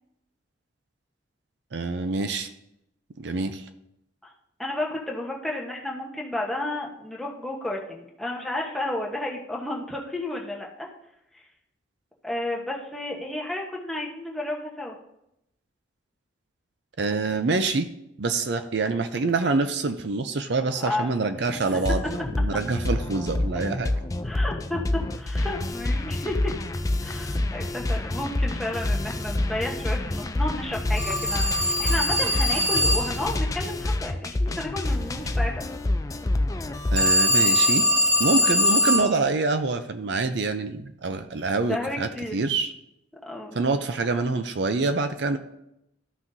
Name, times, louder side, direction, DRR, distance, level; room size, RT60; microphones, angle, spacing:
voice 1, 1.7-2.5 3.2-3.6 17.0-17.9 18.2-23.9 36.9-37.9 38.2-42.7 43.5-45.4, right 3 dB, 65° right, 9 dB, 0.5 m, -26 dB
voice 2, 4.6-10.9 12.2-15.0 20.8-21.1 21.7-21.8 24.2-24.8 25.2-26.5 27.0-35.5 41.6-42.3 43.3-43.6, left 1 dB, ahead, -2 dB, 1.0 m, -32 dB
sound 1, 21.6-37.1, left 1 dB, 15° left, 0.3 m, -27 dB
Telephone, 31.0-33.3 37.0-39.2, left 1 dB, 25° right, 1.3 m, -22 dB
13.0 x 5.9 x 2.7 m, 0.82 s
head